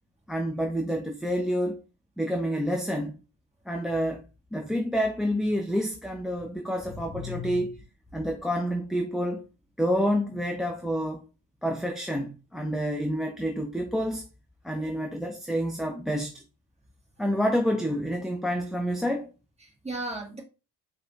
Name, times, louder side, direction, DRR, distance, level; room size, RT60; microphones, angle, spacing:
voice 1, 0.3-1.8 2.2-3.2 3.7-4.2 4.5-7.7 8.1-9.4 9.8-11.2 11.6-14.3 14.6-16.3 17.2-19.3, equal, ahead, 0.5 m, -28 dB
voice 2, 6.8-7.7 8.2-8.3 19.6-20.4, left 1 dB, 15° right, 1.6 m, -37 dB
4.7 x 2.4 x 3.1 m
cardioid pair, 75°, 37 cm